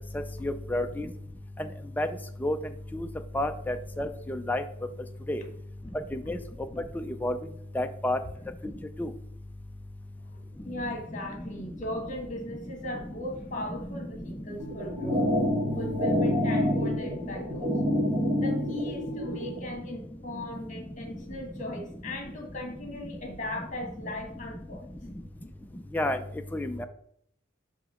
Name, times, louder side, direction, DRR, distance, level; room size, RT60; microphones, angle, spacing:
voice 1, 0.4-1.1 2.0-2.1 2.4-2.6 2.9-3.1 3.3-4.6 5.3-5.4 6.1-6.4 7.0-7.3 7.8-8.2 9.0-9.1 25.9-26.2 26.5-26.7, left 1 dB, 10° left, 7 dB, 0.3 m, -29 dB
voice 2, 10.1-15.2 15.7-17.9 18.4-24.9, left 1 dB, 35° left, 2 dB, 1.4 m, -38 dB
sound 1, 14.6-19.6, left 1 dB, 30° right, 1.2 m, -27 dB
7.1 x 3.0 x 4.9 m, 0.70 s
head